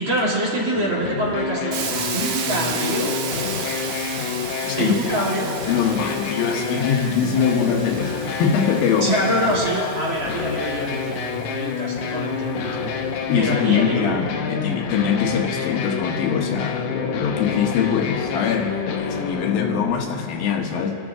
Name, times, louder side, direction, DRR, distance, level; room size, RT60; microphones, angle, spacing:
voice 1, 0.0-3.7 4.8-5.7 9.0-12.9 13.4-14.2, right 1 dB, 35° right, -5 dB, 2.8 m, -25 dB
sound 1, 0.7-19.9, left 6 dB, 70° left, 2.1 m, -28 dB
Hiss, 1.7-11.6, right 7 dB, 65° right, 1.8 m, -33 dB
voice 2, 4.6-5.3 5.6-9.1 13.2-20.9, left 7 dB, 85° left, 2 dB, 3.1 m, -23 dB
26.5 x 12.5 x 3.7 m, 2.9 s
omnidirectional pair, 4.1 m